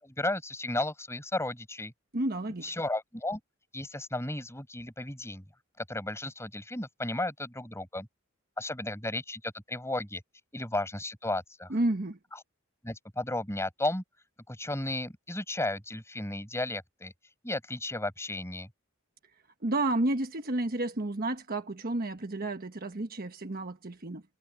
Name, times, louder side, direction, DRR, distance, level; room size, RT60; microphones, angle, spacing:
voice 1, 0.0-1.9 2.6-3.4 3.7-5.4 5.9-8.1 8.6-10.2 10.5-11.8 12.8-14.0 14.5-17.1 17.4-18.7, left 2 dB, 15° left, 6.9 m, -34 dB
voice 2, 2.1-2.7 11.7-12.2 19.6-24.2, right 2 dB, 45° right, 1.3 m, -31 dB
head